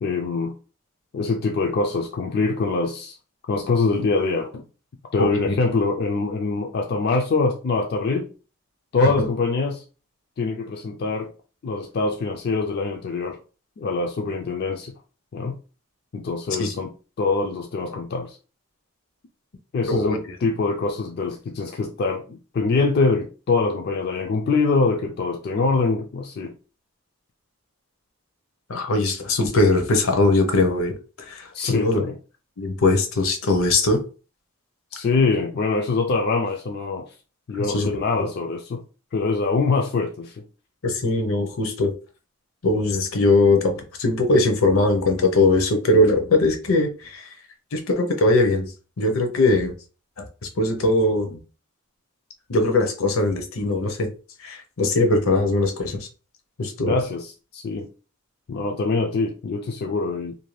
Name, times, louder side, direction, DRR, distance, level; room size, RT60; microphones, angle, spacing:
voice 1, 0.0-0.5 1.1-3.2 3.5-4.6 5.1-8.3 8.9-9.8 10.4-11.3 11.6-13.4 13.8-14.9 15.3-15.5 16.1-16.9 17.2-18.4 19.7-26.5 31.5-32.1 34.9-37.1 37.5-38.8 39.1-40.4 56.8-57.9 58.5-60.4, left 3 dB, 50° left, 0.3 m, -24 dB
voice 2, 5.2-5.5 9.2-9.3 16.6-16.7 19.8-20.4 28.7-32.1 32.6-34.0 37.5-37.9 38.1-38.3 40.8-41.9 42.6-47.3 47.7-49.7 50.2-51.4 52.5-54.1 54.4-56.1 56.6-57.0, left 2 dB, 75° left, 0.7 m, -21 dB
2.6 x 2.2 x 3.1 m
head